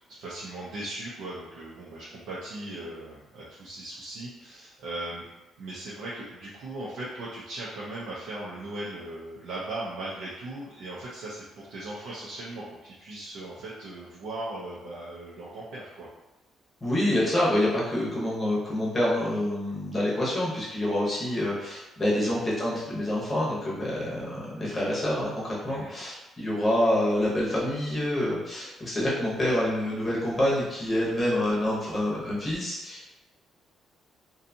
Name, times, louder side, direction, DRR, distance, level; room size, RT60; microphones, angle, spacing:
voice 1, 0.1-5.3 5.6-16.1 22.2-22.3 25.7-25.9, right 2 dB, 75° right, -8 dB, 0.6 m, -38 dB
voice 2, 16.8-33.1, left 1 dB, 20° left, -6 dB, 0.8 m, -27 dB
2.6 x 2.3 x 2.6 m, 1.0 s
cardioid pair, 165°, 0 cm